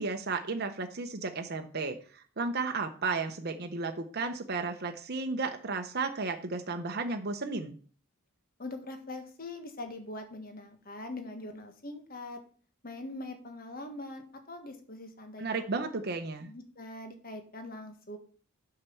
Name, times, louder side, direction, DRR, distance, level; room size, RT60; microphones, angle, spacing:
voice 1, 0.0-7.7 15.4-16.5, right 4 dB, 45° right, 6 dB, 0.8 m, -33 dB
voice 2, 8.6-12.4 12.8-15.7 16.5-18.2, left 2 dB, 40° left, 7 dB, 1.6 m, -42 dB
8.7 x 5.8 x 7.0 m, 0.43 s
head